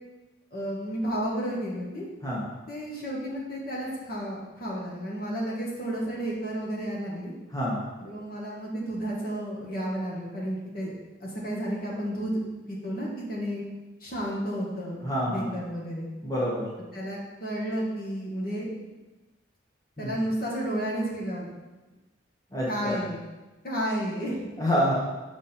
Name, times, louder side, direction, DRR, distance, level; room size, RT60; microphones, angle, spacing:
voice 1, 0.5-2.1 2.7-7.3 8.0-10.9 11.2-12.4 12.7-13.6 14.0-16.1 16.9-18.7 20.0-21.5 22.7-23.2 23.6-24.4, equal, 45° left, -4 dB, 1.6 m, -32 dB
voice 2, 7.5-7.8 15.0-15.5 16.2-16.7 20.0-20.2 22.5-23.0 24.6-25.0, equal, 20° left, -6 dB, 1.3 m, -27 dB
7.0 x 5.2 x 4.4 m, 1.1 s
head